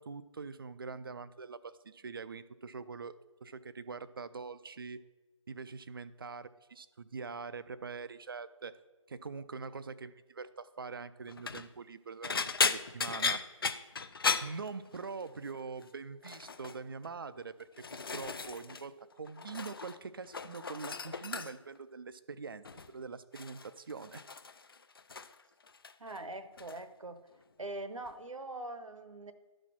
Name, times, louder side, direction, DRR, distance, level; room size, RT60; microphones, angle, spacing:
voice 1, 0.0-5.0 5.5-8.8 9.1-12.3 12.6-13.5 14.4-24.2, right 4 dB, 45° right, 14 dB, 0.4 m, -44 dB
sound 1, 11.3-11.7 12.2-15.3 15.5-15.9 16.2-16.8 17.4-18.9 19.1-20.0 20.2-21.8 22.6-22.9 23.3-25.4 25.7-26.2 26.6-26.8 28.1-28.2, left 5 dB, 45° left, 0.4 m, -36 dB
voice 2, 26.0-27.2 27.6-29.3, right 2 dB, 75° right, 11 dB, 0.9 m, -42 dB
11.5 x 4.2 x 6.1 m, 1.2 s
figure-of-eight pair, 160°, 17 cm